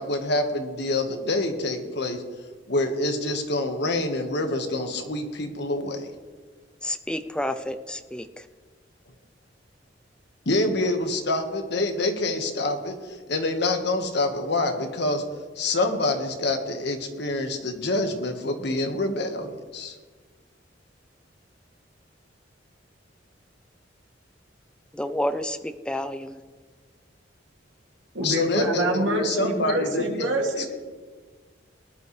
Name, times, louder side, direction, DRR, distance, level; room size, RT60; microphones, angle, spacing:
voice 1, 0.0-2.2 2.7-6.1 10.4-15.2 15.5-20.0 28.2-30.7, left 2 dB, 65° left, 5 dB, 1.5 m, -26 dB
voice 2, 6.8-8.2 25.0-25.6 25.9-26.3, left 1 dB, 5° left, 9 dB, 0.5 m, -29 dB
voice 3, 28.1-30.7, right 1 dB, 80° right, 0 dB, 2.5 m, -26 dB
19.5 x 11.0 x 3.3 m, 1.4 s
head